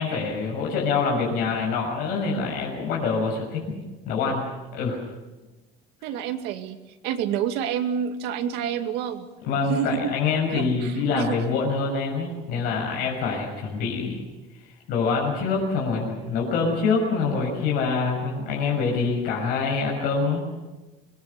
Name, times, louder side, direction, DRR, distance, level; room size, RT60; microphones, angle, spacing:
voice 1, 0.0-3.8 4.0-5.0 9.4-14.2 14.9-20.4, left 4 dB, 60° left, -2 dB, 6.6 m, -25 dB
voice 2, 6.0-6.8 7.0-9.3 9.7-10.1 10.5-11.3, right 8 dB, 70° right, 6 dB, 2.4 m, -28 dB
25.5 x 21.5 x 6.9 m, 1.1 s
cardioid pair, 175°, 17 cm